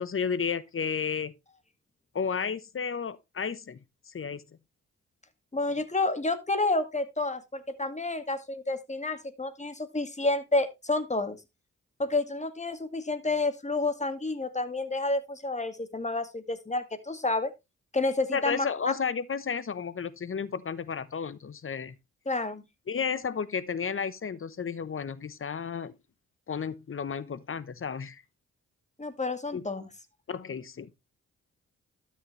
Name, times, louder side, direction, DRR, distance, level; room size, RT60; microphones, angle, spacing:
voice 1, 0.0-1.3 2.1-3.8 4.1-4.4 18.3-22.0 22.9-26.0 26.5-28.2 29.5-29.7 30.3-30.9, left 6 dB, 45° left, 1.0 m, -32 dB
voice 2, 5.5-11.4 12.0-17.5 17.9-18.9 22.3-22.6 29.0-29.9, left 2 dB, 25° left, 2.1 m, -30 dB
12.5 x 6.6 x 3.3 m
supercardioid pair, 50°, 30 cm